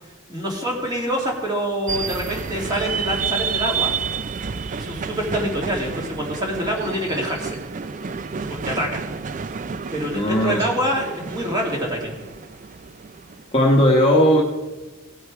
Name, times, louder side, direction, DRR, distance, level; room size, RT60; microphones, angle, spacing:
voice 1, 0.3-3.9 4.7-7.6 8.5-9.0 9.9-12.1, equal, 20° right, -1 dB, 2.3 m, -26 dB
sound 1, 1.9-13.5, right 5 dB, 35° right, 0.4 m, -30 dB
voice 2, 10.1-10.6 13.5-14.4, equal, 25° left, 0 dB, 1.1 m, -16 dB
18.0 x 6.3 x 4.8 m, 1.2 s
head